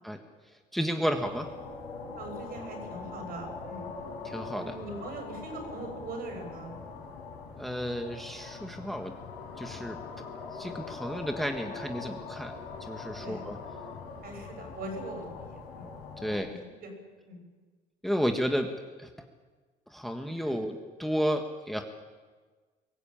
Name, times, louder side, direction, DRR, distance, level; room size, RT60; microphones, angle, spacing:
voice 1, 0.7-1.5 4.2-4.8 7.6-9.1 9.6-10.0 10.5-12.5 12.8-13.6 16.2-16.6 18.0-18.7 19.0-19.1 19.9-21.8, equal, ahead, 4 dB, 1.5 m, -32 dB
sound 1, 1.2-16.4, left 4 dB, 90° left, 5.0 m, -42 dB
voice 2, 2.1-4.0 4.5-6.8 13.2-13.4 14.2-16.0 16.2-16.9 17.2-17.4 20.4-20.6, right 2 dB, 65° right, 3 dB, 6.8 m, -41 dB
22.5 x 13.5 x 8.9 m, 1.4 s
cardioid pair, 110°, 17 cm